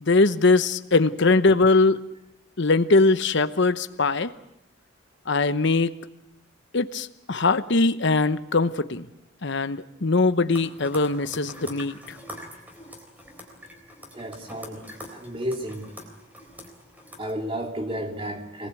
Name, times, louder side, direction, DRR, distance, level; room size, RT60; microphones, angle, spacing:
voice 1, 0.0-2.0 2.6-4.3 5.3-5.9 6.7-9.1 9.4-12.2, left 3 dB, 60° left, 1.0 m, -21 dB
sound 1, 10.5-17.3, equal, 10° right, 3.8 m, -44 dB
voice 2, 14.1-15.9 17.2-18.7, equal, 25° right, 2.9 m, -32 dB
25.0 x 20.0 x 8.4 m
head